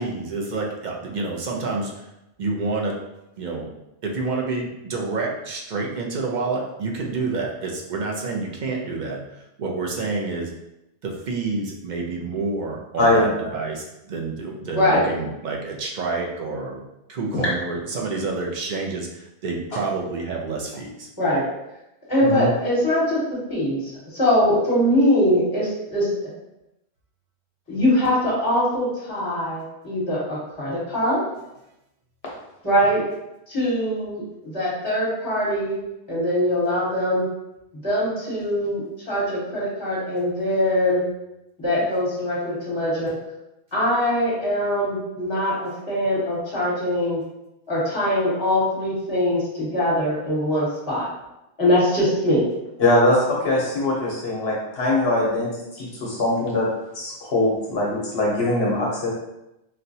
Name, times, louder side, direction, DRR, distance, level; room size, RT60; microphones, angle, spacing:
voice 1, 0.0-2.1 2.4-2.9 3.4-3.7 4.0-10.5 11.0-16.8 17.1-21.1, right 3 dB, 55° right, -1 dB, 0.6 m, -28 dB
voice 2, 13.0-13.3 17.3-17.4 22.2-22.5 52.8-55.5 55.8-56.7 56.9-59.1, left 1 dB, 65° left, -4 dB, 1.0 m, -21 dB
voice 3, 22.1-23.2 23.5-26.1 27.7-31.2 32.6-33.0 33.5-35.8 36.1-37.2 37.8-41.0 41.6-43.1 43.7-47.2 47.7-51.1 51.6-52.4, left 1 dB, 20° left, -8 dB, 1.3 m, -22 dB
4.1 x 2.2 x 2.7 m, 0.90 s
omnidirectional pair, 1.1 m